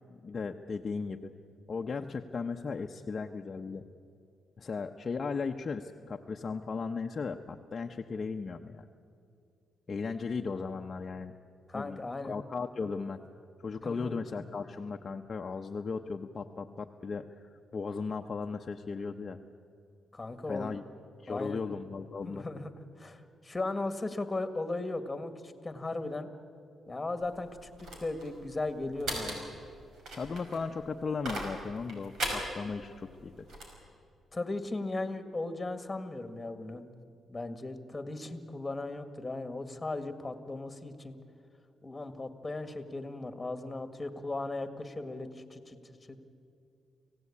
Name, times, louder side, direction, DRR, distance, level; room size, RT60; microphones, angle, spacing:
voice 1, 0.1-1.3 1.7-3.8 4.6-8.9 9.9-11.3 11.7-13.2 13.6-19.4 20.5-20.8 21.2-22.5 30.1-33.5, left 4 dB, 40° left, 3 dB, 0.8 m, -36 dB
voice 2, 11.7-12.3 13.8-14.1 20.1-20.7 21.3-21.6 22.2-22.7 23.0-26.3 26.9-27.7 28.0-29.5 34.3-36.9 37.3-41.2 41.8-45.8 46.1-46.2, left 2 dB, 20° left, 9 dB, 1.9 m, -37 dB
sound 1, 27.2-33.8, right 1 dB, 75° right, 5.7 m, -40 dB
25.5 x 17.0 x 8.6 m, 2.5 s
cardioid pair, 105°, 0 cm